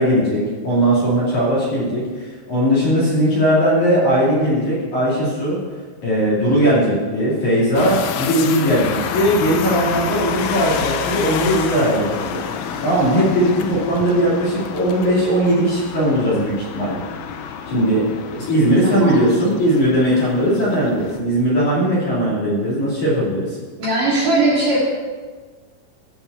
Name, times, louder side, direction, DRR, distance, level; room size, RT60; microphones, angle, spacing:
voice 1, 0.0-5.6 6.0-12.4 12.8-17.0 17.7-23.6, equal, 45° left, -7 dB, 3.3 m, -18 dB
sound 1, 7.8-21.2, left 7 dB, 80° left, 3.1 m, -29 dB
voice 2, 18.8-19.3 23.8-24.8, right 2 dB, 50° right, -6 dB, 3.1 m, -18 dB
14.5 x 5.4 x 6.9 m, 1.4 s
omnidirectional pair, 5.9 m